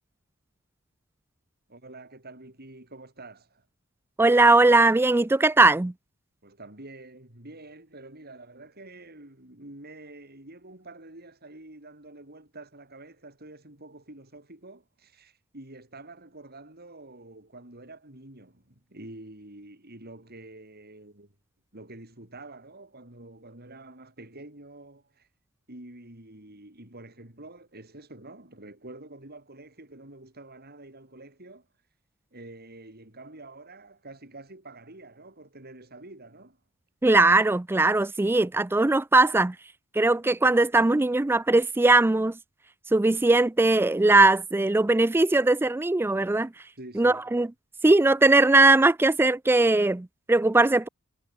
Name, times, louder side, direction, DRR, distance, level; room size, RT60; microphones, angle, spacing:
voice 1, 1.7-3.7 6.4-21.3 21.7-25.3 25.7-31.7 32.3-36.6 46.8-47.3, right 2 dB, 45° right, 6.3 m, -47 dB
voice 2, 4.2-5.9 37.0-39.6 39.9-42.4 42.9-46.5 47.0-47.5 47.8-50.9, right 2 dB, 10° right, 0.4 m, -20 dB
head